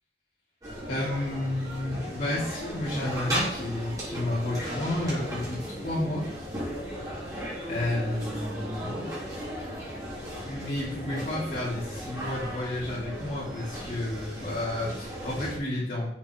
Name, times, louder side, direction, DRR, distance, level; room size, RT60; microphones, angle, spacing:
sound 1, 0.6-15.6, equal, 20° right, 3.7 m, -36 dB
voice 1, 0.9-6.3 7.2-9.1 10.5-16.1, left 1 dB, 40° left, -12 dB, 3.4 m, -31 dB
8.1 x 7.5 x 4.7 m, 0.75 s
head